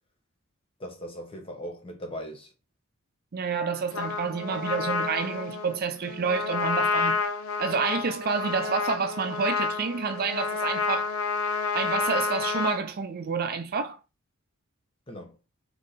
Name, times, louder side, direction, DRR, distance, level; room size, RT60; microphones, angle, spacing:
voice 1, 0.8-2.5 15.1-15.4, equal, 25° left, 1.0 m, -39 dB
voice 2, 3.3-7.2 7.6-11.1 11.7-14.0, right 5 dB, 45° right, 0.4 m, -29 dB
Trumpet, 3.9-12.8, left 4 dB, 70° left, 0.7 m, -29 dB
3.6 x 3.1 x 4.0 m
head